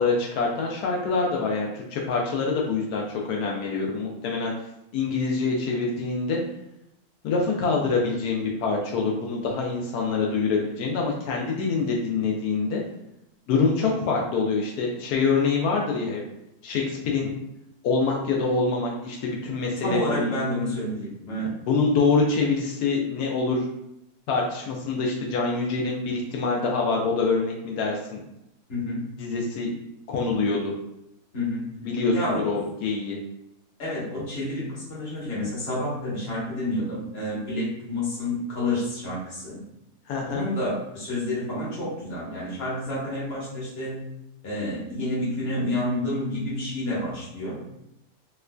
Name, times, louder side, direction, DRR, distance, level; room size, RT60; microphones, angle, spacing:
voice 1, 0.0-4.5 4.9-6.4 7.2-12.8 13.5-16.2 16.6-17.3 17.8-20.3 21.7-23.7 24.3-28.2 29.2-29.8 30.1-30.7 31.8-33.2 40.1-40.5, left 4 dB, 85° left, -1 dB, 1.1 m, -25 dB
voice 2, 19.8-21.5 28.7-29.1 31.3-31.7 32.1-32.4 33.8-39.6 40.3-44.0 44.4-47.7, left 1 dB, 45° left, -7 dB, 1.4 m, -29 dB
4.3 x 2.5 x 2.2 m, 0.83 s
omnidirectional pair, 1.6 m